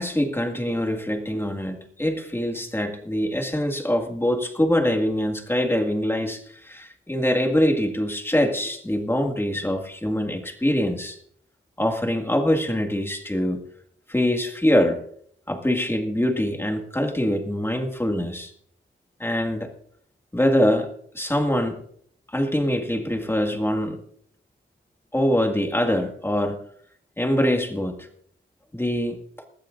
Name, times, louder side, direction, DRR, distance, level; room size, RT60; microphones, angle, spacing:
voice 1, 0.0-11.2 11.8-13.6 14.1-15.0 15.5-18.5 19.2-19.7 20.3-21.8 22.3-24.0 25.1-26.6 27.2-28.1 28.7-29.2, left 1 dB, 10° left, 4 dB, 2.0 m, -24 dB
20.5 x 14.0 x 2.5 m, 0.64 s
wide cardioid pair, 95°, 20 cm